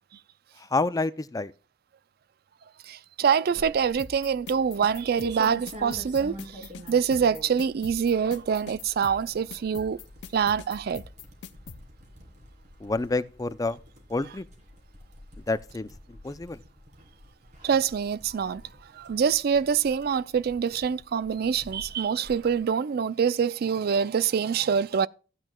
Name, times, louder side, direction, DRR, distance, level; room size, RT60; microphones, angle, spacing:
voice 1, 0.7-1.5 12.8-13.8 14.1-14.4 15.5-15.9 16.2-16.6, left 3 dB, 20° left, 0.5 m, -28 dB
voice 2, 2.9-10.0 10.3-11.0 17.6-18.6 18.9-25.1, right 7 dB, 60° right, 0.4 m, -25 dB
sound 1, 3.5-22.6, equal, 40° right, 3.1 m, -47 dB
sound 2, 4.0-11.8, left 5 dB, 80° left, 0.7 m, -43 dB
14.0 x 9.0 x 2.3 m
head